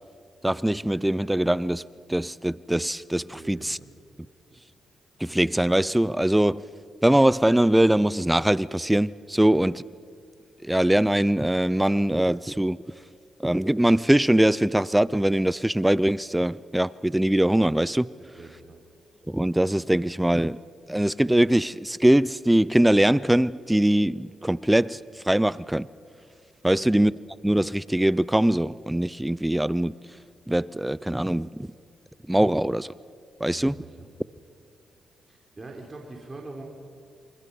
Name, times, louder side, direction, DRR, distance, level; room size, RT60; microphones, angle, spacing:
voice 1, 0.4-1.8 2.1-3.8 5.2-6.6 7.0-9.8 10.6-12.8 13.4-18.1 19.3-20.6 20.9-25.9 26.6-27.1 27.4-29.9 30.5-31.7 32.3-32.9 33.4-33.8, right 1 dB, 10° right, 0.5 m, -22 dB
voice 2, 3.3-3.9 4.5-4.6 18.4-18.8 26.6-27.0 33.5-34.1 35.3-36.6, right 2 dB, 35° right, 3.6 m, -43 dB
28.0 x 24.0 x 5.5 m
supercardioid pair, 55°, 0 cm